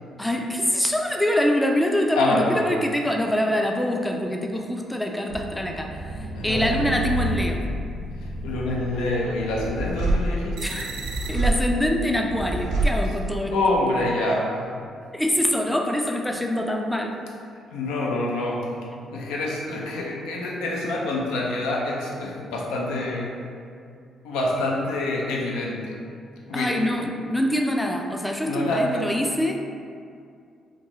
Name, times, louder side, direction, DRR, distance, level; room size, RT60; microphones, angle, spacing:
voice 1, 0.2-6.2 6.4-7.6 10.6-10.9 11.3-13.5 15.1-17.1 26.5-29.7, left 1 dB, 5° left, 1 dB, 0.3 m, -24 dB
voice 2, 2.2-2.6 6.3-6.7 8.2-10.8 13.5-14.7 17.7-18.7 19.1-23.4 24.2-26.0 26.5-26.8 28.4-29.1, left 2 dB, 85° left, -2 dB, 0.4 m, -26 dB
sound 1, 5.3-13.6, right 1 dB, 80° right, 0.3 m, -28 dB
2.9 x 2.2 x 2.5 m, 2.3 s
supercardioid pair, 60°, 0 cm